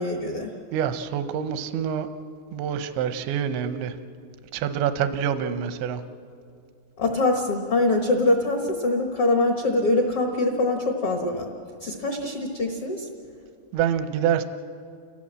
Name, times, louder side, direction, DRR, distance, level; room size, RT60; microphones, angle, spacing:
voice 1, 0.0-0.5 7.0-11.5 11.8-13.1, left 2 dB, 75° left, 2 dB, 1.3 m, -23 dB
voice 2, 0.7-2.1 2.5-3.9 4.5-6.0 13.7-14.4, right 8 dB, 85° right, 9 dB, 3.1 m, -26 dB
29.5 x 17.0 x 7.5 m, 2.3 s
omnidirectional pair, 5.2 m